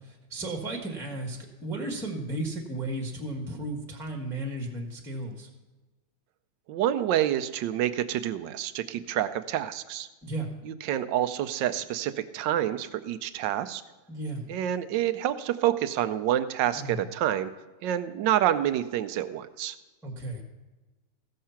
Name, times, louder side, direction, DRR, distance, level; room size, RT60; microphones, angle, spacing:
voice 1, 0.1-5.5 10.2-10.5 14.1-14.4 16.8-17.0 20.0-20.4, right 2 dB, ahead, 1 dB, 1.1 m, -34 dB
voice 2, 6.7-10.1 10.6-13.8 14.5-17.5 17.8-19.7, right 11 dB, 75° right, 11 dB, 1.1 m, -28 dB
15.5 x 6.5 x 5.7 m, 1.2 s
omnidirectional pair, 2.3 m